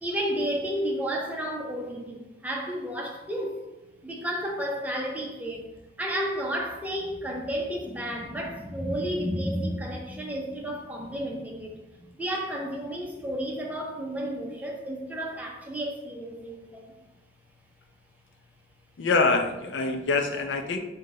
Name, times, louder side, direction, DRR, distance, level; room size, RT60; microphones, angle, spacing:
voice 1, 0.0-3.6 4.0-5.7 6.0-11.8 12.2-16.9, equal, 10° right, -1 dB, 0.5 m, -32 dB
voice 2, 19.0-20.8, left 3 dB, 70° left, 5 dB, 0.4 m, -25 dB
3.6 x 2.2 x 3.7 m, 1.0 s
head